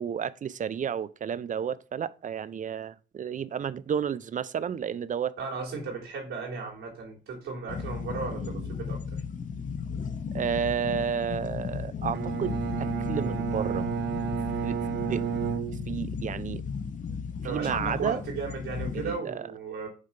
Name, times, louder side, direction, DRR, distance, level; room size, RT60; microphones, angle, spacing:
voice 1, 0.0-5.3 8.4-8.6 10.3-13.9 14.6-15.3 15.9-16.6 17.5-18.2 18.9-19.5, right 8 dB, 40° right, 0.5 m, -32 dB
voice 2, 5.4-9.2 17.4-19.9, right 4 dB, 85° right, 3.4 m, -35 dB
sound 1, 7.7-19.2, left 6 dB, 40° left, 0.8 m, -35 dB
Bowed string instrument, 12.1-16.3, right 8 dB, 60° right, 0.8 m, -32 dB
6.5 x 3.7 x 5.6 m
cardioid pair, 90°, 20 cm